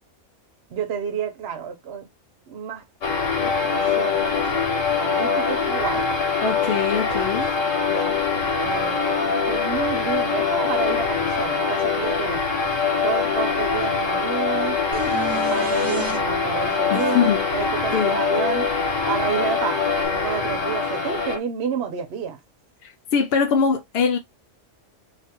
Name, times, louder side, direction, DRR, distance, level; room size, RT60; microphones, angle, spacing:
voice 1, 0.7-2.1 2.5-2.8 3.4-6.1 7.9-8.2 8.6-12.4 12.9-14.8 15.3-18.7 19.1-22.4, right 7 dB, 60° right, 1.0 m, -30 dB
sound 1, 3.0-21.4, left 5 dB, 90° left, 1.5 m, -23 dB
voice 2, 6.4-7.5 16.9-17.4 17.9-18.2 22.8-24.2, left 6 dB, 65° left, 0.7 m, -22 dB
sound 2, 14.9-16.2 20.0-20.1, equal, 15° right, 0.6 m, -31 dB
2.9 x 2.4 x 4.2 m
omnidirectional pair, 1.3 m